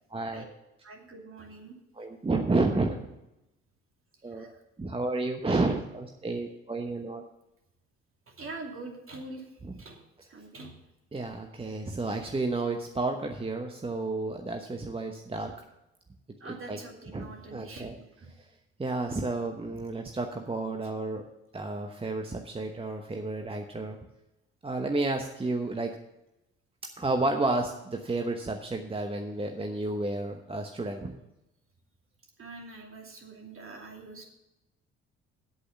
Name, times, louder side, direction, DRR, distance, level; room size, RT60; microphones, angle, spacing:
voice 1, 0.1-0.4 1.9-3.0 4.2-4.5 4.8-7.2 9.6-9.7 11.1-15.5 16.4-16.8 17.1-17.9 18.4-18.5 18.8-21.2 21.5-24.0 24.6-25.9 27.0-31.1, right 2 dB, 15° right, 4 dB, 1.0 m, -31 dB
voice 2, 0.8-1.8 4.3-4.6 8.3-9.5 9.8-10.8 16.4-18.3 32.4-34.2, right 3 dB, 40° right, 1 dB, 2.7 m, -44 dB
8.2 x 8.2 x 7.1 m, 0.92 s
hypercardioid pair, 50°, 32 cm